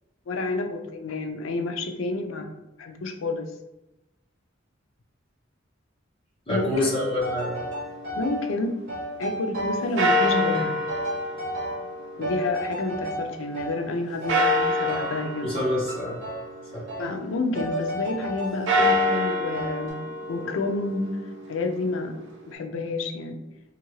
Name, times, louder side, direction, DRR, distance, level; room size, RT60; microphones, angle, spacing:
voice 1, 0.3-3.5 6.5-6.9 8.2-8.8 9.2-10.8 12.2-15.5 17.0-20.0 20.3-21.2 21.5-23.4, left 2 dB, 85° left, 5 dB, 0.4 m, -29 dB
voice 2, 6.5-7.6 15.4-16.2 16.7-16.8, left 1 dB, 25° left, -6 dB, 1.0 m, -27 dB
sound 1, 6.7-8.8 10.0-13.3 14.3-17.3 18.5-22.5, left 1 dB, 65° right, 0.6 m, -28 dB
sound 2, 7.2-8.4 8.9-9.9 10.2-11.9 12.2-13.8 14.2-15.3 15.5-16.5 16.9-17.1 17.5-19.1 19.5-19.9, right 1 dB, 45° right, 1.2 m, -33 dB
3.1 x 2.4 x 3.1 m, 0.95 s
head